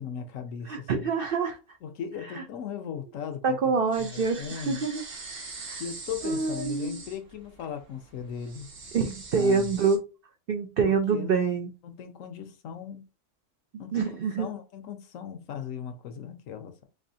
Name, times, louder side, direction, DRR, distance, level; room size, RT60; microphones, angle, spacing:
voice 1, 0.0-1.1 1.8-4.9 5.7-8.7 9.3-9.8 10.8-11.6 11.8-13.0 13.8-14.1 14.4-16.8, left 7 dB, 70° left, 0.9 m, -38 dB
voice 2, 0.7-1.6 2.4-2.5 3.4-5.0 5.7-5.8 6.2-7.0 8.9-10.0 10.5-11.7 13.9-14.5, right 5 dB, 75° right, 0.5 m, -26 dB
sound 1, 3.9-10.0, right 3 dB, 45° right, 0.9 m, -43 dB
3.8 x 3.3 x 2.7 m
omnidirectional pair, 1.6 m